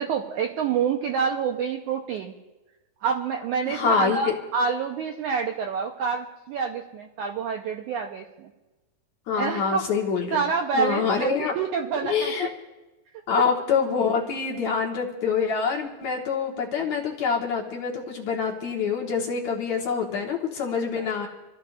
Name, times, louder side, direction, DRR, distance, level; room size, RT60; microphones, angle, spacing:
voice 1, 0.0-2.3 3.0-8.5 9.4-9.9 10.3-12.5 19.9-20.0 20.9-21.3, right 6 dB, 80° right, 3 dB, 1.8 m, -27 dB
voice 2, 3.7-4.3 9.3-10.4 10.7-11.5 12.0-12.5 13.3-21.3, left 6 dB, 60° left, -1 dB, 2.3 m, -26 dB
27.5 x 14.5 x 2.4 m, 1.1 s
omnidirectional pair, 4.5 m